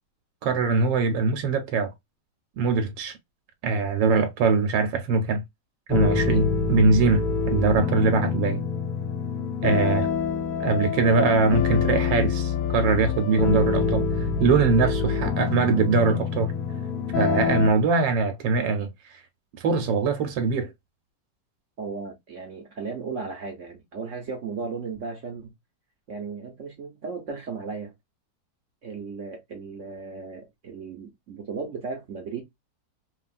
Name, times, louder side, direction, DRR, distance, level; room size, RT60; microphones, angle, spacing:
voice 1, 0.4-1.9 2.6-3.1 3.6-5.4 5.9-8.6 9.6-10.1 10.6-16.5 17.1-19.2 19.6-20.7, right 4 dB, 80° right, 1.3 m, -22 dB
sound 1, 5.9-17.7, left 6 dB, 70° left, 0.9 m, -26 dB
voice 2, 21.8-25.5 26.1-27.9 28.8-32.4, right 4 dB, 60° right, 0.9 m, -35 dB
3.3 x 2.3 x 2.3 m
omnidirectional pair, 2.0 m